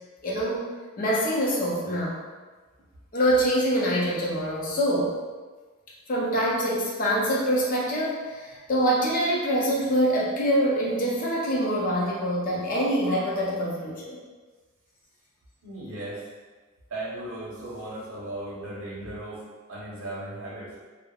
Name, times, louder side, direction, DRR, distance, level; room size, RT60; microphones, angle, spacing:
voice 1, 0.2-0.7 1.0-2.2 3.1-5.1 6.1-14.2, equal, 40° left, -4 dB, 0.5 m, -25 dB
voice 2, 15.6-16.2 16.9-20.7, right 1 dB, 70° right, -4 dB, 0.7 m, -36 dB
3.1 x 2.0 x 2.3 m, 1.3 s
head